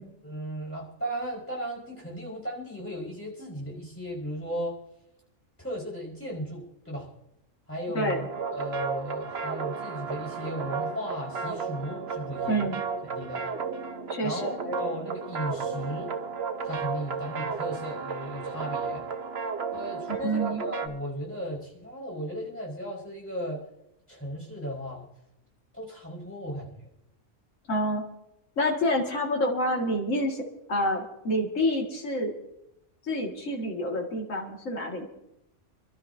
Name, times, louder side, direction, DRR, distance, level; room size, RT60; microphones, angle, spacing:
voice 1, 0.0-4.8 5.6-7.1 7.7-13.5 14.2-16.1 16.6-19.0 19.7-23.6 24.1-25.1 25.7-26.7, equal, 10° left, -5 dB, 4.8 m, -36 dB
voice 2, 7.9-8.3 12.5-12.8 14.1-14.6 20.1-20.6 27.7-28.0 28.6-32.3 33.1-35.1, equal, 75° left, -1 dB, 2.5 m, -28 dB
sound 1, 7.9-20.9, right 5 dB, 55° right, 1.2 m, -33 dB
29.0 x 12.5 x 2.8 m, 0.83 s
omnidirectional pair, 1.4 m